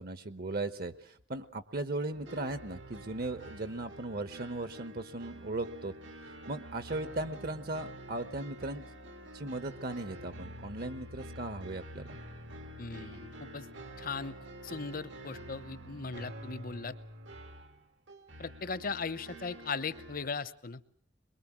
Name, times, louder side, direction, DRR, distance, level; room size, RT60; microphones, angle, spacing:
voice 1, 0.0-5.9 6.5-8.9 9.3-12.2, right 2 dB, 55° right, 11 dB, 1.1 m, -37 dB
sound 1, 2.1-20.3, right 1 dB, 85° right, 2.3 m, -48 dB
voice 2, 12.8-13.7 14.0-14.3 14.6-17.0 18.4-20.8, left 4 dB, 50° left, 15 dB, 0.9 m, -38 dB
23.0 x 22.5 x 7.5 m, 0.63 s
head